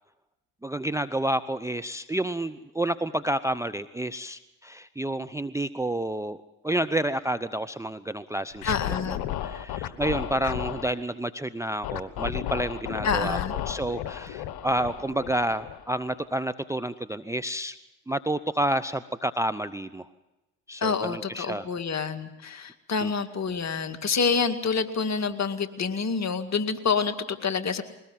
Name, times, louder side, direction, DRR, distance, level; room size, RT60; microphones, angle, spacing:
voice 1, 0.6-6.4 6.6-8.8 9.4-13.4 13.7-17.8 18.1-20.1 20.7-21.6 23.0-23.1, right 1 dB, 5° right, 14 dB, 0.7 m, -29 dB
Scratching (performance technique), 8.6-10.9 11.8-16.1, left 12 dB, 65° left, 1.4 m, -33 dB
voice 2, 8.6-9.2 13.0-13.5 20.8-27.8, left 5 dB, 40° left, 8 dB, 2.1 m, -27 dB
21.5 x 19.0 x 7.5 m, 1.0 s
hypercardioid pair, 60°, 42 cm